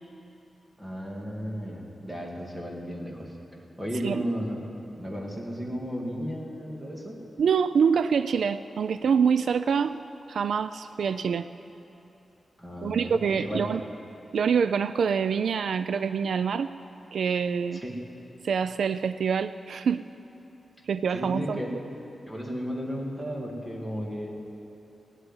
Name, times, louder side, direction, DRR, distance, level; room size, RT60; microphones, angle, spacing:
voice 1, 0.8-3.3 3.8-4.7 5.0-7.2 12.6-13.1 13.4-13.7 17.7-18.0 21.1-21.7 22.3-24.3, equal, 10° right, -1 dB, 2.1 m, -34 dB
voice 2, 7.4-10.0 10.3-11.5 12.8-13.8 14.3-16.7 17.1-17.8 18.4-20.0 20.9-21.6, right 6 dB, 75° right, 13 dB, 0.3 m, -25 dB
17.0 x 7.9 x 9.8 m, 2.9 s
wide cardioid pair, 165°, 0 cm